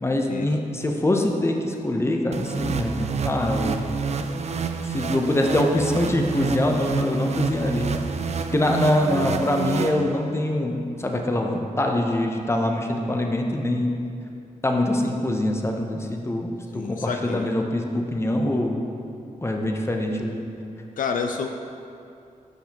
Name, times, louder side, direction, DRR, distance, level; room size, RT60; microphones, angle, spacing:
voice 1, 0.0-3.8 4.9-8.0 8.5-13.9 14.6-18.8 19.4-20.4, left 1 dB, 20° left, 2 dB, 0.7 m, -24 dB
sound 1, 2.3-10.5, right 5 dB, 50° right, 0.4 m, -28 dB
voice 2, 16.7-17.5 21.0-21.5, left 6 dB, 75° left, 5 dB, 0.4 m, -28 dB
8.1 x 5.6 x 2.9 m, 2.5 s
cardioid pair, 70°, 14 cm